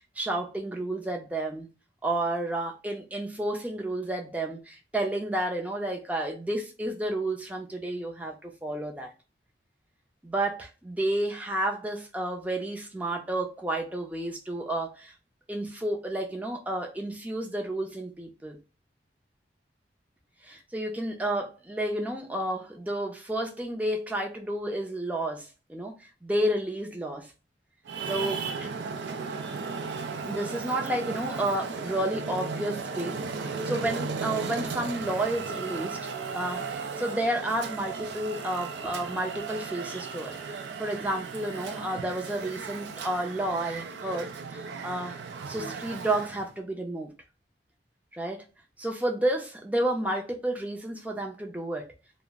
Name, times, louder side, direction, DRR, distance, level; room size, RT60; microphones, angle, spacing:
voice 1, 0.2-1.7 2.0-9.1 10.2-15.1 15.5-18.6 20.4-26.0 26.2-27.3 28.1-28.7 30.2-36.1 36.3-45.2 45.5-47.1 48.1-48.5 48.8-51.9, right 1 dB, 10° right, 0.4 m, -31 dB
Traffic noise roadway noise, 27.8-46.5, right 4 dB, 80° right, 0.4 m, -35 dB
2.3 x 2.0 x 3.4 m
head